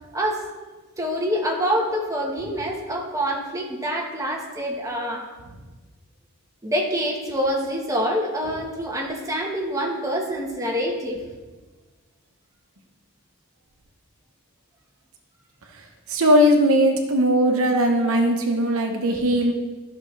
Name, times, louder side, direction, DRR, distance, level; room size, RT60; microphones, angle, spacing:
voice 1, 0.1-0.4 1.0-5.3 6.6-11.2, equal, 15° right, -1 dB, 1.2 m, -26 dB
voice 2, 16.1-19.5, equal, 70° right, 3 dB, 1.0 m, -19 dB
12.5 x 6.0 x 3.3 m, 1.3 s
head